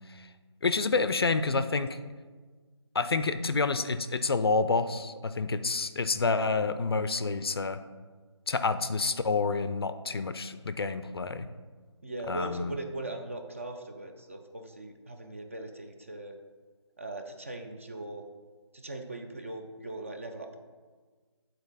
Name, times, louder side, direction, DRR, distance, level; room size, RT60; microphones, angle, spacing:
voice 1, 0.6-2.0 2.9-7.8 8.5-11.5 12.3-12.7, left 4 dB, 55° left, 11 dB, 0.4 m, -28 dB
voice 2, 6.3-6.6 12.0-16.4 17.0-18.2 18.7-20.6, right 2 dB, 30° right, 4 dB, 0.4 m, -40 dB
9.0 x 3.9 x 4.0 m, 1.4 s
figure-of-eight pair, 170°, 15 cm